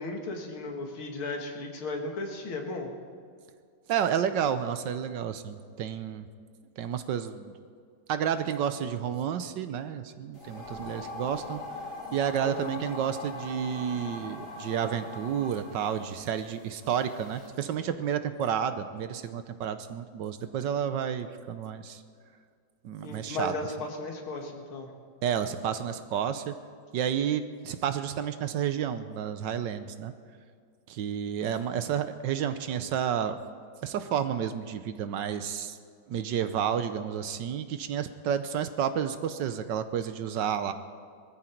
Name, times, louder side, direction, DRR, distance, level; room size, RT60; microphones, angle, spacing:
voice 1, 0.0-2.9 12.4-12.7 23.0-24.9, left 2 dB, 85° left, 3 dB, 2.7 m, -35 dB
voice 2, 3.9-6.3 6.8-7.5 8.1-11.6 12.1-22.0 22.8-23.5 25.2-26.5 26.9-30.1 30.9-33.4 33.8-35.8 36.1-40.7, right 8 dB, 70° right, 11 dB, 1.3 m, -30 dB
sound 1, 10.3-17.5, left 2 dB, 40° left, 3.0 m, -42 dB
21.5 x 14.0 x 4.5 m, 2.2 s
omnidirectional pair, 2.2 m